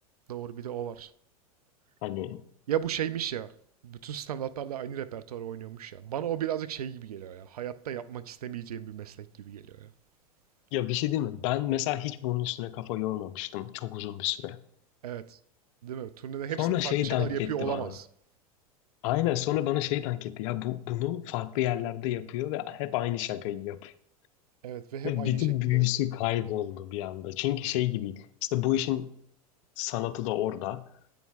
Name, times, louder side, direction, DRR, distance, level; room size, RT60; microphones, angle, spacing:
voice 1, 0.3-1.1 2.7-3.5 3.8-9.9 15.0-15.4 15.8-18.1 24.6-25.8, right 10 dB, 85° right, 0.4 m, -35 dB
voice 2, 2.0-2.5 10.7-14.6 16.6-18.0 19.0-23.9 25.0-29.2 29.8-30.9, left 14 dB, 55° left, 0.5 m, -30 dB
8.8 x 7.0 x 2.4 m
hypercardioid pair, 90°, 19 cm